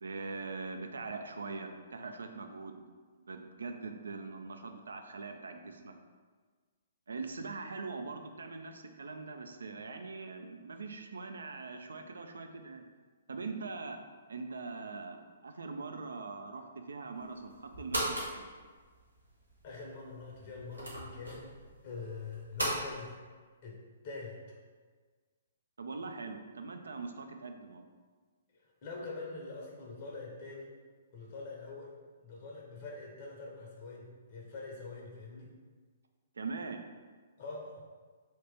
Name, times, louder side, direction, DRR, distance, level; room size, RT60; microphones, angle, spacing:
voice 1, 0.0-2.8 3.3-5.9 7.1-12.9 13.3-14.0 14.3-18.5 25.8-27.9 36.4-36.8, right 4 dB, 65° right, 6 dB, 0.3 m, -42 dB
sound 1, 17.2-22.8, right 1 dB, 85° right, 0.9 m, -39 dB
voice 2, 19.6-21.6 21.8-23.1 23.6-23.8 24.0-24.4 28.8-30.7 31.1-31.9 32.2-35.5 37.4-37.8, left 3 dB, 40° left, -2 dB, 0.6 m, -44 dB
2.9 x 2.8 x 3.3 m, 1.5 s
figure-of-eight pair, 120°, 0 cm